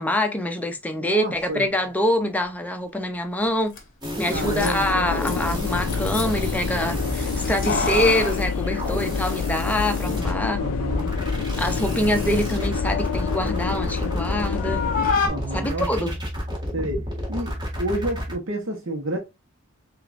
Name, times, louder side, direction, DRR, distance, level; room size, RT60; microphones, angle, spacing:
voice 1, 0.0-3.8 4.2-10.6 11.6-14.9 15.5-16.2, left 1 dB, 5° left, 0.5 m, -25 dB
voice 2, 0.9-1.7 4.3-5.3 10.6-11.1 15.3-16.1 16.7-17.0 17.3-19.2, right 1 dB, 65° right, 0.9 m, -30 dB
Keys jangling, 3.4-3.5 3.7-3.8 4.4-6.5 7.4-9.6 9.9-10.0 10.9-11.4 11.8-14.3 14.5-15.3, left 4 dB, 40° left, 1.0 m, -29 dB
sound 1, 4.0-18.3, equal, 20° right, 1.7 m, -31 dB
sound 2, 4.3-15.1, left 6 dB, 90° left, 0.3 m, -28 dB
6.3 x 2.5 x 2.4 m
head